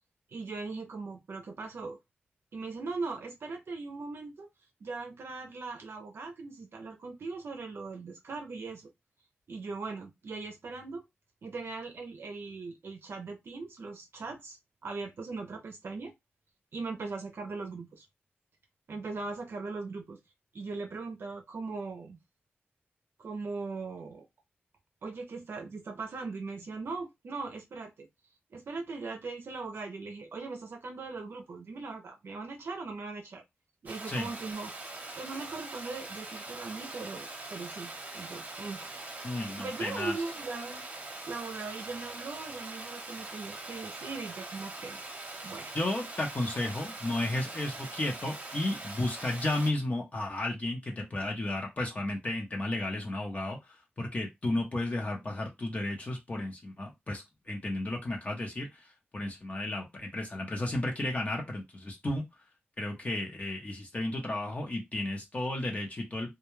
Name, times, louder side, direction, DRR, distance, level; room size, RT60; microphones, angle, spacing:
voice 1, 0.3-2.0 2.5-4.5 4.8-8.9 9.5-11.0 11.4-16.1 16.7-18.0 18.9-20.2 20.5-22.2 23.2-24.3 25.0-28.1 28.5-33.4 33.8-34.9 35.2-38.9 39.2-40.8 41.3-45.0 45.4-45.8, right 3 dB, 70° right, 0.5 m, -39 dB
Water, 33.9-49.7, right 2 dB, 40° right, 0.8 m, -42 dB
voice 2, 39.2-40.1 45.7-53.6 54.0-58.8 59.1-62.2 62.8-66.4, left 1 dB, 35° left, 0.7 m, -33 dB
2.3 x 2.2 x 3.1 m
wide cardioid pair, 85°, 4 cm